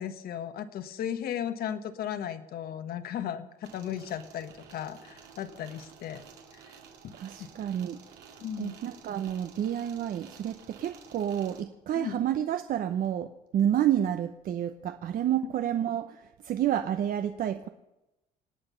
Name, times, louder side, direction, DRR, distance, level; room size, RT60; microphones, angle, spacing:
voice 1, 0.0-6.2 6.5-6.6 7.0-7.5 8.4-8.8 11.9-12.2, left 9 dB, 65° left, 10 dB, 1.3 m, -36 dB
sound 1, 3.6-11.6, right 6 dB, 80° right, 2.6 m, -52 dB
voice 2, 7.1-8.0 8.6-17.7, right 10 dB, 60° right, 8 dB, 0.8 m, -29 dB
26.0 x 9.0 x 5.7 m, 0.95 s
cardioid pair, 110°, 17 cm